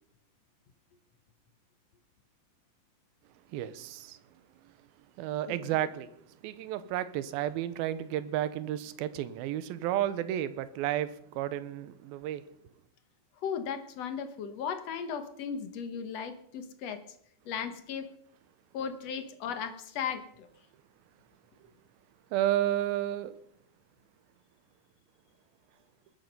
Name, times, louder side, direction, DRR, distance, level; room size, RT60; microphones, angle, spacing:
voice 1, 3.5-4.2 5.2-6.1 6.4-12.4 22.3-23.4, right 12 dB, 85° right, 2.7 m, -32 dB
voice 2, 13.4-17.0 17.5-18.1 18.7-20.5, left 7 dB, 60° left, 1.8 m, -36 dB
20.5 x 10.5 x 5.4 m
omnidirectional pair, 4.2 m